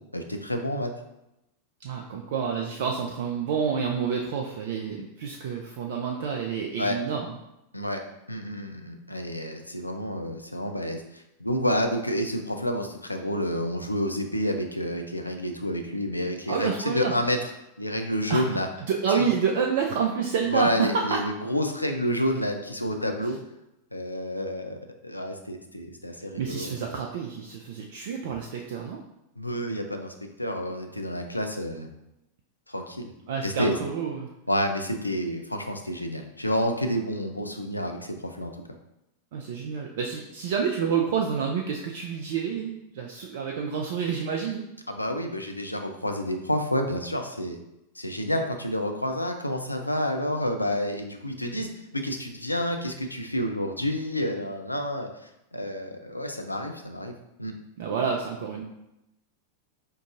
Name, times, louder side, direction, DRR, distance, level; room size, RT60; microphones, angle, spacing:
voice 1, 0.1-0.9 6.8-7.0 7.7-8.0 8.3-17.5 17.8-18.7 19.1-19.3 20.5-23.4 23.9-26.8 29.4-31.9 32.7-33.1 33.4-33.8 34.5-38.5 44.9-47.6 48.0-55.1 55.5-57.1 57.4-57.5, equal, 85° left, 5 dB, 0.3 m, -29 dB
voice 2, 1.8-7.3 16.5-17.2 18.3-21.2 26.4-29.0 33.3-34.3 39.3-44.6 57.8-58.6, right 6 dB, 55° right, 1 dB, 0.3 m, -28 dB
4.5 x 2.6 x 2.4 m, 0.89 s
figure-of-eight pair, 90°, 0 cm